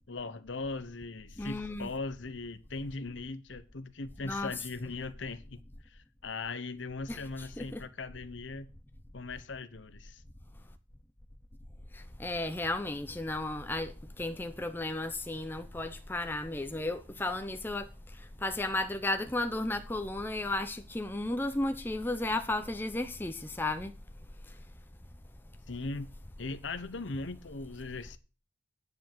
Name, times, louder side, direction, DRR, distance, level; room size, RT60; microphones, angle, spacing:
voice 1, 0.1-5.6 5.9-8.7 9.1-10.2 25.7-26.1 26.4-28.2, left 3 dB, 65° left, 0.9 m, -39 dB
voice 2, 1.4-1.9 4.2-4.5 7.1-7.2 7.6-7.8 11.9-17.9 18.2-23.9, left 2 dB, 10° left, 0.6 m, -34 dB
9.7 x 4.7 x 7.6 m
head